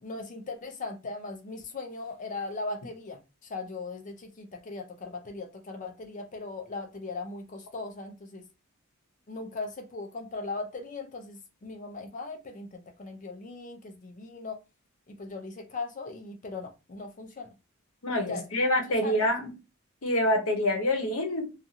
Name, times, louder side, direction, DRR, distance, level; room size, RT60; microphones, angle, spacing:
voice 1, 0.0-3.2 3.5-8.4 9.3-14.6 15.1-17.5 18.2-18.7 19.0-19.3, left 3 dB, 35° left, 0.5 m, -39 dB
voice 2, 18.0-19.5 20.0-21.5, left 1 dB, 75° left, 0.8 m, -26 dB
2.6 x 2.4 x 2.7 m
head